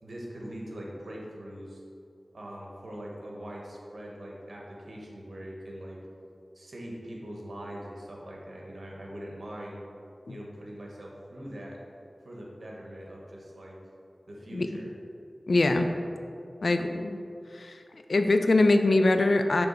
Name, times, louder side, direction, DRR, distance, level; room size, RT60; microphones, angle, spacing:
voice 1, 0.0-1.8 2.3-6.0 6.5-9.8 10.3-11.8 12.2-13.8 14.3-14.9, equal, 70° right, -2 dB, 1.2 m, -42 dB
voice 2, 15.5-15.9 16.6-17.2 17.5-17.8 18.1-19.7, left 2 dB, 75° left, 7 dB, 0.4 m, -23 dB
6.9 x 3.4 x 5.2 m, 2.6 s
wide cardioid pair, 75°, 0 cm